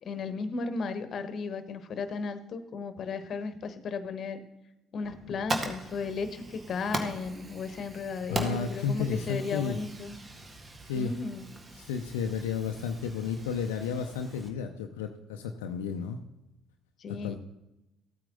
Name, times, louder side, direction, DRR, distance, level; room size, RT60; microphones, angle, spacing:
voice 1, 0.0-4.4 4.9-10.2 10.9-11.4 17.0-17.4, left 4 dB, 50° left, 11 dB, 1.2 m, -35 dB
Fire, 5.0-14.5, right 2 dB, 30° right, 1.8 m, -40 dB
voice 2, 8.3-9.8 10.8-11.1 11.7-16.2 17.1-17.4, left 6 dB, 80° left, 4 dB, 0.6 m, -32 dB
14.5 x 8.8 x 3.9 m, 0.93 s
hypercardioid pair, 55°, 0 cm